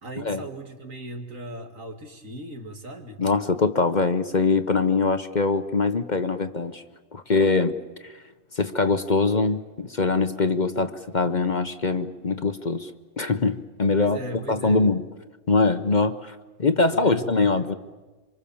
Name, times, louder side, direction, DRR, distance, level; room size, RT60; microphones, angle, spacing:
voice 1, 0.0-3.2 14.0-14.9 16.9-17.8, right 1 dB, 75° right, 4 dB, 2.7 m, -38 dB
voice 2, 3.2-6.8 7.1-7.8 8.0-8.1 8.5-14.2 14.5-15.0 15.5-17.7, left 3 dB, 40° left, 10 dB, 1.0 m, -23 dB
26.5 x 25.5 x 7.1 m, 1.2 s
omnidirectional pair, 1.4 m